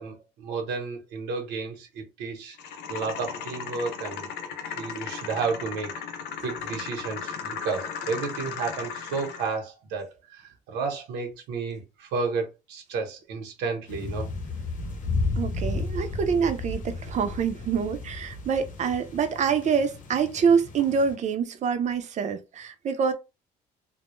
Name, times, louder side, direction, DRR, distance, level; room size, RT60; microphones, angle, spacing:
voice 1, 0.0-2.6 2.9-4.3 4.8-5.9 6.4-14.3, right 4 dB, 90° right, 0.9 m, -32 dB
sound 1, 2.6-9.6, left 7 dB, 80° left, 0.6 m, -36 dB
sound 2, 13.9-21.1, left 3 dB, 50° left, 0.8 m, -33 dB
voice 2, 15.4-23.1, right 6 dB, 45° right, 0.5 m, -26 dB
2.2 x 2.1 x 3.0 m
cardioid pair, 110°, 17 cm